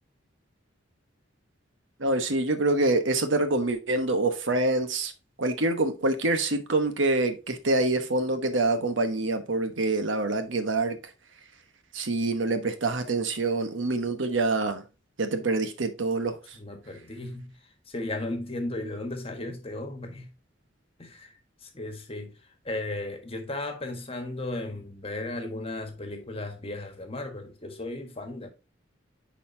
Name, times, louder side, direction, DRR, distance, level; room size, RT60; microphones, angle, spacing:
voice 1, 2.0-5.1 5.4-11.0 11.9-14.8 15.2-16.6, right 2 dB, 75° right, 1.1 m, -26 dB
voice 2, 16.5-17.5 17.9-20.3 21.0-21.3 21.6-22.4 22.6-28.5, left 2 dB, 30° left, 1.4 m, -35 dB
9.9 x 4.2 x 2.7 m
head